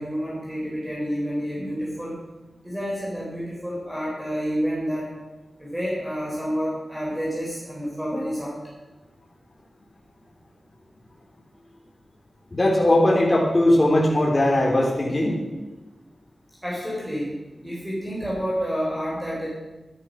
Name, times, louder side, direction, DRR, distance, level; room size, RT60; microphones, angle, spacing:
voice 1, 0.0-2.2 2.6-5.1 5.6-8.6 16.6-17.4 17.6-19.5, equal, 10° right, -5 dB, 3.9 m, -29 dB
voice 2, 12.5-15.4, left 1 dB, 30° left, -3 dB, 3.3 m, -19 dB
12.5 x 11.0 x 6.3 m, 1.1 s
wide cardioid pair, 100°, 0 cm